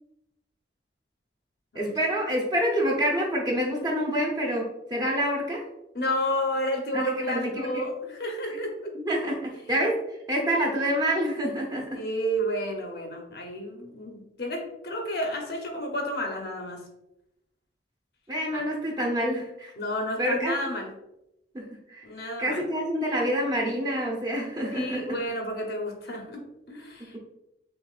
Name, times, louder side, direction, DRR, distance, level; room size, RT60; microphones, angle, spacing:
voice 1, 1.7-5.6 6.9-7.8 9.0-10.0 10.3-12.0 18.3-19.7 20.2-20.5 21.5-22.1 22.4-25.0, equal, 20° right, -1 dB, 0.8 m, -27 dB
voice 2, 5.9-8.9 11.9-16.8 18.5-18.6 19.8-20.9 22.0-22.6 24.7-27.2, equal, 60° left, 1 dB, 0.8 m, -31 dB
6.2 x 2.5 x 2.4 m, 0.86 s
head